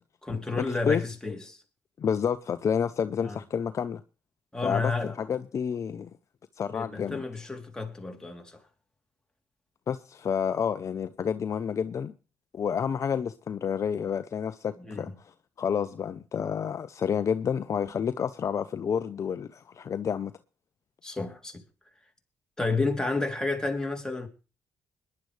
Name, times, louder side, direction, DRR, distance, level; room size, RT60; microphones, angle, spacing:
voice 1, 0.2-1.6 3.2-3.4 4.5-5.1 6.7-8.6 14.8-15.1 21.0-21.6 22.6-24.3, left 3 dB, 10° left, 3.2 m, -31 dB
voice 2, 2.0-4.0 4.6-6.1 6.6-7.2 9.9-12.1 12.5-20.3, left 7 dB, 50° left, 0.7 m, -29 dB
21.5 x 10.5 x 3.3 m
supercardioid pair, 65°, 7 cm